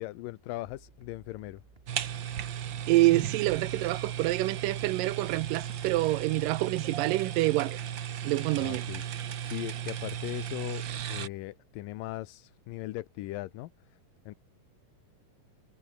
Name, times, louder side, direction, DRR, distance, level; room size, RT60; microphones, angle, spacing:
voice 1, 0.0-1.6 8.6-14.0 14.3-14.4, left 17 dB, 85° left, 2.5 m, -39 dB
sound 1, 0.6-6.6, right 3 dB, 20° right, 2.0 m, -58 dB
sound 2, 1.9-11.3, right 9 dB, 65° right, 1.1 m, -36 dB
voice 2, 2.9-7.8 8.2-8.8, right 18 dB, 85° right, 2.4 m, -27 dB
omnidirectional pair, 3.9 m